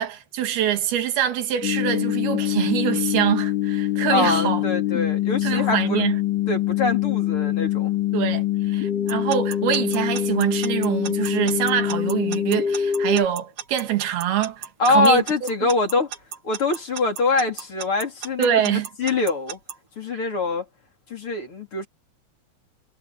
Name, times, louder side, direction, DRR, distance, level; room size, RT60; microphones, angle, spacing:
voice 1, 0.0-4.6 5.4-6.2 8.1-15.2 18.4-18.9 20.1-20.3, right 10 dB, 85° right, 3.7 m, -24 dB
sound 1, 1.6-13.3, left 11 dB, 60° left, 3.5 m, -24 dB
voice 2, 4.1-6.0 6.5-7.9 14.8-16.1 16.4-19.6 20.0-20.7 21.1-21.9, left 3 dB, 35° left, 4.1 m, -24 dB
Alarm / Clock, 9.1-19.7, right 8 dB, 45° right, 2.4 m, -34 dB
omnidirectional pair, 4.3 m